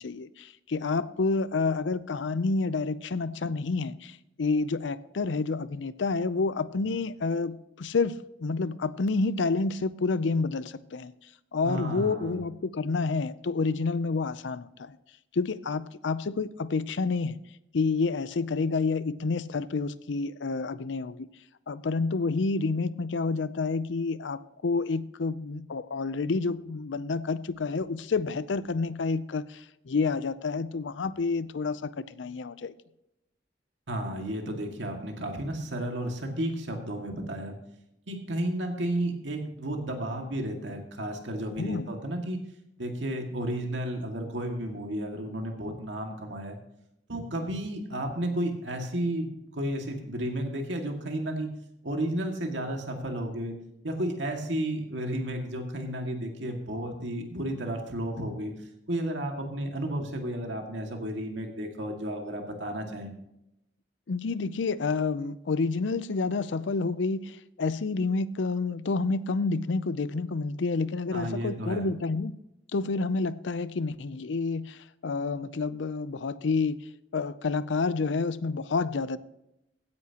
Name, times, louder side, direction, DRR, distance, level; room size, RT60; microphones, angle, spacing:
voice 1, 0.0-11.1 11.5-15.0 15.3-17.4 17.7-21.3 21.7-32.7 41.6-41.9 64.1-72.4 72.7-76.8 77.1-79.2, left 4 dB, 75° left, 0.5 m, -29 dB
voice 2, 11.6-12.4 33.9-37.6 38.1-42.4 42.8-46.6 47.1-51.5 51.8-53.6 53.8-58.5 58.9-63.1 71.1-71.9, right 1 dB, 75° right, 2.1 m, -32 dB
16.5 x 9.6 x 2.9 m
head